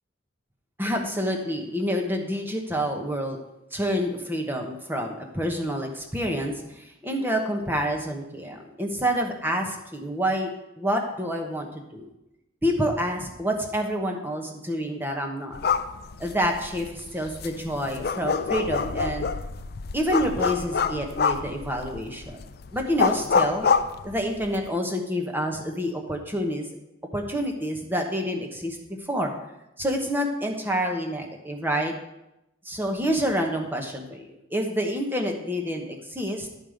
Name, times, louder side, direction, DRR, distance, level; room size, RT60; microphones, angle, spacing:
voice 1, 0.8-3.4 3.7-10.5 10.8-12.1 12.6-15.5 16.2-19.3 19.9-22.4 22.7-23.7 24.0-26.7 27.1-28.8 29.1-29.3 29.8-31.9 32.6-36.5, equal, 10° right, 3 dB, 1.1 m, -28 dB
sound 1, 15.5-24.7, left 5 dB, 50° left, 0.5 m, -27 dB
10.5 x 5.4 x 6.5 m, 0.90 s
head